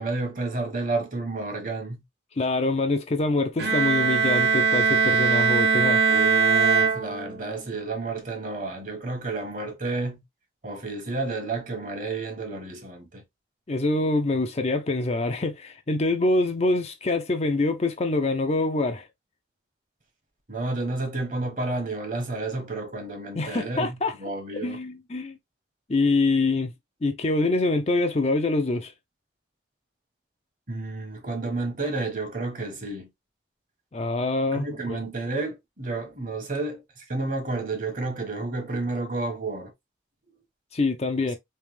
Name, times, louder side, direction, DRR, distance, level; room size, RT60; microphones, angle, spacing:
voice 1, 0.0-2.0 6.1-10.2 10.6-13.2 20.5-24.8 30.7-33.1 34.5-39.7, right 3 dB, 45° right, 1.3 m, -31 dB
voice 2, 2.4-6.0 13.7-19.1 23.4-24.1 24.6-25.4 25.9-26.7 27.0-28.9 33.9-35.0 40.7-41.4, left 2 dB, 35° left, 0.5 m, -25 dB
Bowed string instrument, 3.6-7.6, right 5 dB, 65° right, 0.7 m, -21 dB
3.3 x 2.9 x 3.2 m
head